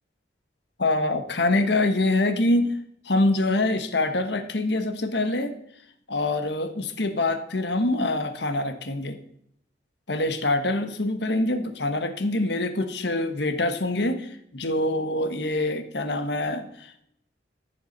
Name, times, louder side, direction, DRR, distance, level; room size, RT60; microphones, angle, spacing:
voice 1, 0.8-2.7 3.0-5.5 6.1-9.2 10.1-17.0, left 2 dB, 70° left, 8 dB, 1.3 m, -25 dB
14.5 x 7.0 x 5.4 m, 0.72 s
head